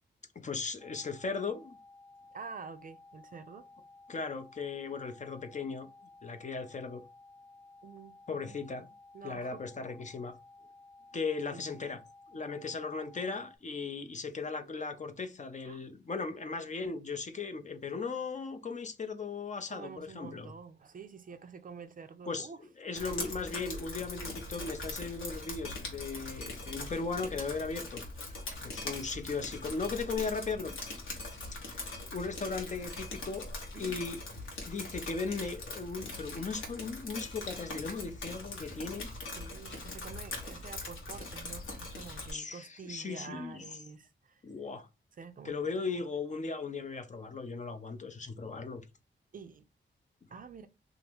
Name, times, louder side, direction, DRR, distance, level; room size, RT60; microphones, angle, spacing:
voice 1, 0.4-1.8 4.1-5.9 6.2-7.0 8.3-8.9 9.2-10.4 11.1-12.0 12.3-20.5 22.3-22.5 22.8-28.0 28.6-30.7 31.7-34.2 34.7-39.1 42.3-43.6 44.4-44.9 45.4-48.8, left 4 dB, 40° left, 0.5 m, -37 dB
sound 1, 0.8-13.6, left 3 dB, 5° left, 1.0 m, -56 dB
voice 2, 2.3-3.7 7.8-8.2 8.5-8.6 9.1-9.7 11.5-12.0 15.6-15.8 19.7-22.6 23.0-23.2 33.7-34.0 39.4-44.4 45.2-45.6 49.3-49.7 50.3-50.7, right 5 dB, 45° right, 0.4 m, -48 dB
Drip, 22.9-42.3, left 2 dB, 85° left, 1.0 m, -41 dB
2.8 x 2.5 x 3.4 m
wide cardioid pair, 90°, 20 cm